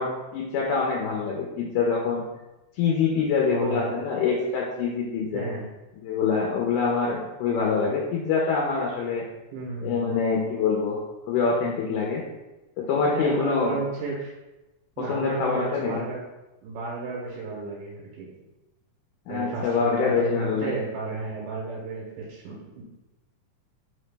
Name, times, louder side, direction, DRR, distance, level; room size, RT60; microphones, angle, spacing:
voice 1, 0.0-2.3 2.8-5.4 6.0-9.3 9.8-11.0 11.3-12.2 12.8-13.8 15.0-16.1 19.3-20.7, left 5 dB, 90° left, -2 dB, 2.0 m, -25 dB
voice 2, 3.5-3.9 5.3-5.7 9.5-10.1 13.1-14.3 15.0-16.2 16.6-18.3 19.3-22.8, right 3 dB, 85° right, -4 dB, 2.2 m, -32 dB
5.0 x 2.0 x 3.2 m, 1.0 s
omnidirectional pair, 3.5 m